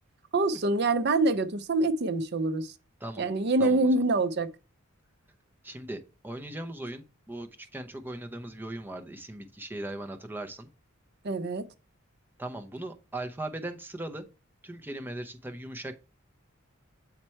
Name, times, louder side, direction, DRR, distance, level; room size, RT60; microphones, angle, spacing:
voice 1, 0.3-2.7 3.2-4.5 11.2-11.7, right 2 dB, 50° right, 0.6 m, -25 dB
voice 2, 3.6-3.9 5.6-10.7 12.4-14.3 14.6-16.0, right 1 dB, 10° right, 0.7 m, -39 dB
7.4 x 4.4 x 4.5 m
head